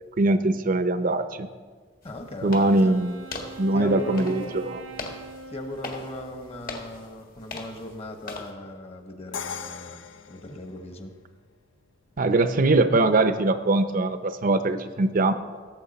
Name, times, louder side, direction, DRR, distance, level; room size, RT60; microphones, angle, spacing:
voice 1, 0.2-1.5 2.4-3.1 3.6-4.8 12.2-15.3, right 2 dB, 50° right, 10 dB, 0.6 m, -22 dB
sound 1, 2.0-8.5, left 3 dB, 50° left, 1.6 m, -41 dB
voice 2, 2.0-2.9 3.7-4.8 5.5-10.0 10.3-11.1, left 1 dB, 35° left, 5 dB, 1.2 m, -38 dB
Wind instrument woodwind instrument, 2.4-6.9, right 3 dB, 85° right, 0.8 m, -43 dB
Crash cymbal, 9.3-11.3, left 7 dB, 80° left, 0.5 m, -38 dB
17.5 x 7.3 x 4.2 m, 1.5 s
head